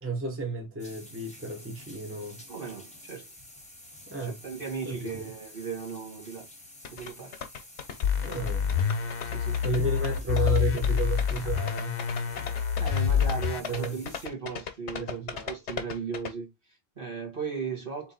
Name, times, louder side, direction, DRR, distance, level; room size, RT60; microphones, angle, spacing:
voice 1, 0.0-2.4 4.1-4.4 4.8-5.3 8.2-8.7 9.6-11.9 13.7-14.0 14.9-15.6, right 3 dB, 15° right, 0.8 m, -32 dB
sound 1, 0.8-14.3, left 1 dB, 5° left, 1.0 m, -50 dB
voice 2, 2.5-3.3 4.2-6.5 6.9-7.4 9.3-9.6 12.4-18.1, right 5 dB, 55° right, 1.9 m, -37 dB
sound 2, 6.9-16.3, left 7 dB, 85° left, 1.1 m, -38 dB
sound 3, 8.0-13.6, left 8 dB, 60° left, 0.8 m, -27 dB
3.8 x 3.0 x 4.0 m
omnidirectional pair, 1.1 m